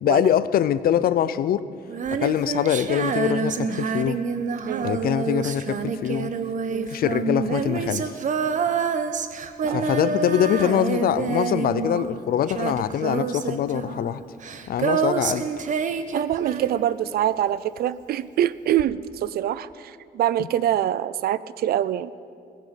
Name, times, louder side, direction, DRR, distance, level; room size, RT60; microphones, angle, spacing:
voice 1, 0.0-1.6 2.1-4.2 4.8-6.3 6.9-8.1 9.7-14.2 14.7-15.5 20.4-20.5, left 10 dB, 70° left, 0.5 m, -23 dB
Female singing, 1.9-17.2 18.8-18.9, right 6 dB, 55° right, 0.9 m, -27 dB
voice 2, 16.1-22.1, right 11 dB, 75° right, 0.5 m, -25 dB
17.5 x 14.5 x 5.8 m
cardioid pair, 95°, 16 cm